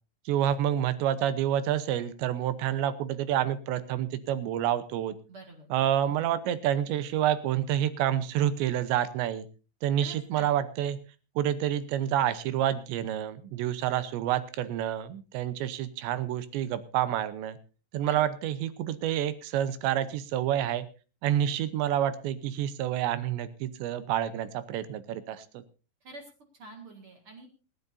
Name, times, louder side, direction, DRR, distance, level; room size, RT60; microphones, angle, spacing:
voice 1, 0.3-5.1 5.7-9.5 9.8-11.0 11.4-17.6 17.9-20.9 21.2-25.4, right 11 dB, 80° right, 13 dB, 3.0 m, -28 dB
voice 2, 5.3-5.7 10.0-10.6 18.1-18.3 26.0-27.5, right 2 dB, 45° right, 3 dB, 1.9 m, -47 dB
26.5 x 10.5 x 2.7 m, 0.32 s
omnidirectional pair, 5.3 m